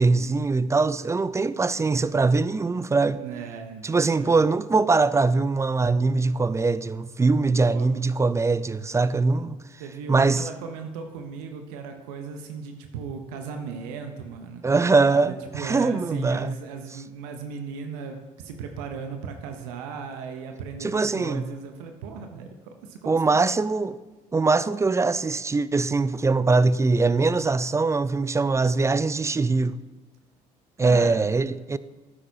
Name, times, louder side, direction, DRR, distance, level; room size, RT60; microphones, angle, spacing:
voice 1, 0.0-3.2 3.8-9.6 10.1-10.5 14.6-16.5 20.8-21.5 23.1-24.0 24.3-29.8 30.8-31.8, right 3 dB, 15° right, 0.3 m, -22 dB
voice 2, 3.1-4.5 7.7-7.9 9.8-23.4 30.8-31.2, right 6 dB, 85° right, 0.7 m, -37 dB
10.0 x 8.4 x 2.7 m
hypercardioid pair, 60°, 19 cm